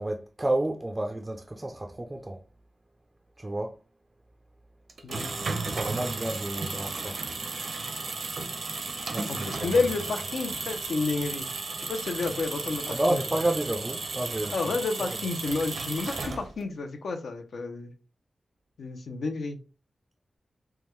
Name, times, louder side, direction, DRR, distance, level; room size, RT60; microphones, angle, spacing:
voice 1, 0.0-2.4 3.4-3.7 5.6-7.2 9.1-9.7 12.9-14.6, right 1 dB, 20° right, 0.3 m, -30 dB
sound 1, 4.9-16.7, right 3 dB, 65° right, 0.6 m, -34 dB
voice 2, 5.0-5.4 9.3-11.5 11.8-13.2 14.5-17.9 18.8-19.6, left 3 dB, 85° left, 0.6 m, -30 dB
3.4 x 2.2 x 3.0 m
wide cardioid pair, 120°, 0 cm